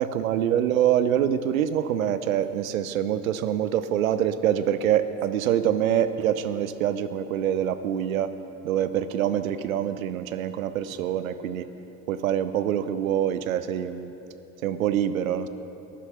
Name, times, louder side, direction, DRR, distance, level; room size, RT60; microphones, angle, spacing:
voice 1, 0.0-8.3 8.6-11.7 12.1-14.1 14.6-15.5, right 10 dB, 75° right, 12 dB, 0.7 m, -25 dB
13.5 x 11.0 x 5.7 m, 3.0 s
figure-of-eight pair, 55°, 42 cm